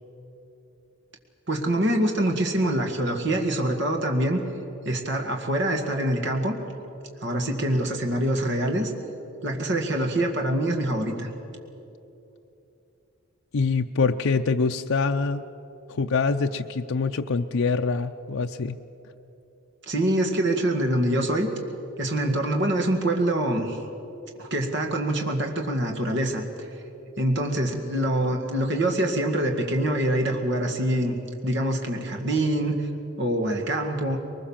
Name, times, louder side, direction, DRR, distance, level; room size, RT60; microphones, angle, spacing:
voice 1, 1.5-4.4 4.8-6.5 7.2-8.9 9.4-11.3 19.8-21.5 22.0-23.8 24.4-26.7 27.2-31.2 31.4-32.9 33.2-34.2, right 1 dB, 55° right, 3 dB, 2.0 m, -25 dB
voice 2, 13.5-15.4 15.9-18.8, left 4 dB, 70° left, 5 dB, 0.5 m, -25 dB
22.5 x 20.5 x 7.3 m, 2.9 s
head